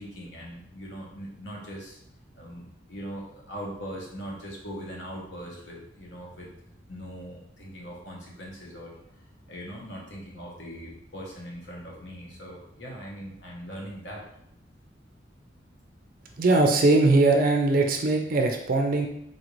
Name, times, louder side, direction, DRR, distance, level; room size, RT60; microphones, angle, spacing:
voice 1, 0.0-2.0 2.3-6.5 6.9-9.0 9.5-14.2, equal, 75° left, -2 dB, 1.0 m, -40 dB
voice 2, 16.4-19.1, right 2 dB, 50° right, 4 dB, 0.4 m, -21 dB
3.9 x 2.5 x 3.0 m, 0.73 s
head